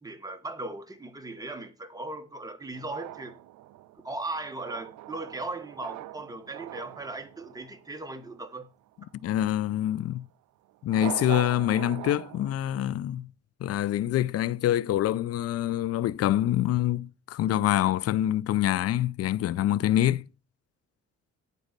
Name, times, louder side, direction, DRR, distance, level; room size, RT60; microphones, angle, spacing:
voice 1, 0.0-3.3 4.0-8.7, right 2 dB, 10° right, 1.2 m, -38 dB
sound 1, 2.7-8.5 10.8-12.5, right 16 dB, 70° right, 0.4 m, -42 dB
voice 2, 9.2-10.3 10.8-13.3 13.6-20.2, left 12 dB, 55° left, 0.4 m, -26 dB
9.0 x 4.0 x 6.6 m
cardioid pair, 90°, 30 cm